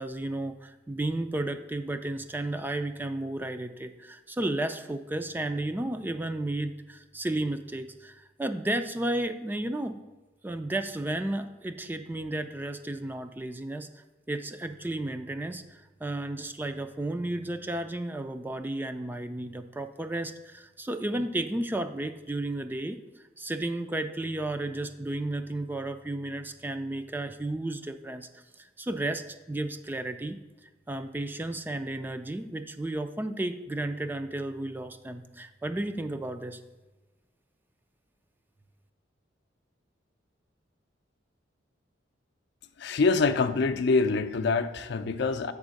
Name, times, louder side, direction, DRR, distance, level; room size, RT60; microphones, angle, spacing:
voice 1, 0.0-10.0 10.4-13.9 14.3-23.0 23.4-28.3 28.6-29.2 29.5-30.4 30.9-36.6, right 1 dB, 10° right, 8 dB, 0.3 m, -33 dB
voice 2, 42.8-45.5, left 4 dB, 65° left, 8 dB, 0.5 m, -25 dB
7.3 x 3.6 x 6.3 m, 1.2 s
head